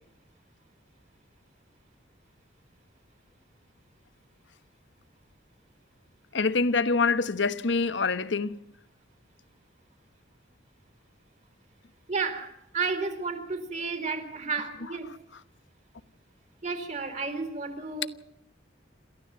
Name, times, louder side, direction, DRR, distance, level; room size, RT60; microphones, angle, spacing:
voice 1, 6.3-8.6, left 4 dB, 70° left, 1.1 m, -25 dB
voice 2, 12.1-15.1 16.6-18.1, right 4 dB, 35° right, 3.9 m, -32 dB
28.5 x 14.5 x 7.6 m
head